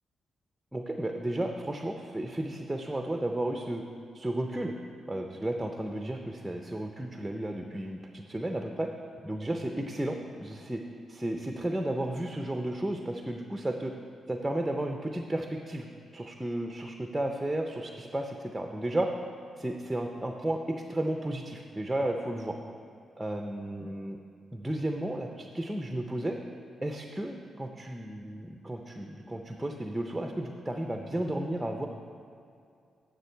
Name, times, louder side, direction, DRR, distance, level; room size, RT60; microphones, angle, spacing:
voice 1, 0.7-3.8 4.1-4.7 5.1-8.9 9.3-10.8 11.1-13.9 14.3-15.9 16.1-19.1 19.6-22.6 23.2-24.2 24.5-26.4 26.8-31.9, right 1 dB, 10° right, 3 dB, 0.5 m, -33 dB
9.8 x 6.5 x 4.5 m, 2.4 s
cardioid pair, 100°, 0 cm